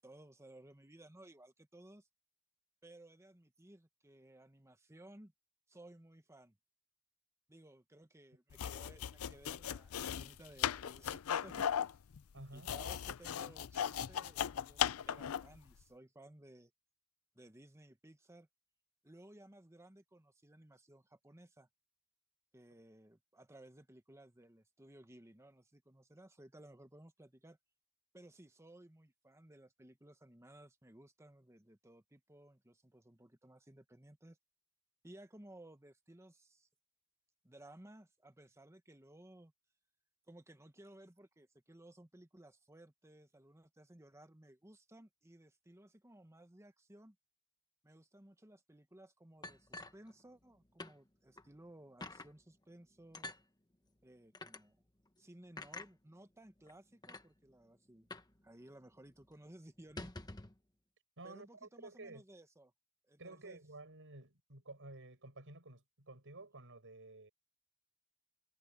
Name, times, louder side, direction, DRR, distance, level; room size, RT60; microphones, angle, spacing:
voice 1, 0.0-2.1 2.8-5.3 5.7-6.6 7.5-11.7 12.5-16.7 17.3-18.5 19.0-21.7 22.5-27.6 28.1-34.4 35.0-36.7 37.4-39.5 40.3-47.2 47.8-53.3 54.0-54.8 55.2-58.1 58.4-60.1 61.2-62.7 63.1-63.6, right 1 dB, 15° right, 1.2 m, -58 dB
sound 1, 8.5-15.6, left 9 dB, 70° left, 0.5 m, -37 dB
voice 2, 12.3-12.7 61.2-62.2 63.2-67.3, right 2 dB, 60° right, 7.6 m, -52 dB
sound 2, 49.4-50.5 50.8-51.0 51.4-51.5 52.0-52.3 53.1-53.4 54.3-54.6 55.6-55.9 56.7-56.8 57.0-57.3 58.1-58.4 58.6-58.7 59.1-59.3 59.8-60.6, left 2 dB, 20° left, 1.4 m, -47 dB
head